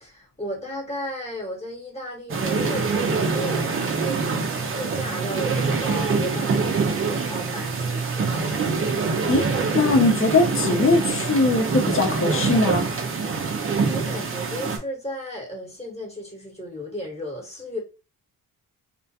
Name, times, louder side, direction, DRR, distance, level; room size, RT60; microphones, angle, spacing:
voice 1, 0.0-8.5 13.5-17.8, equal, 15° left, 1.0 m, -35 dB
sound 1, 2.3-14.8, right 4 dB, 35° right, 0.5 m, -25 dB
voice 2, 9.7-12.8, left 3 dB, 35° left, 0.7 m, -20 dB
2.4 x 2.2 x 2.6 m
cardioid pair, 90°, 37 cm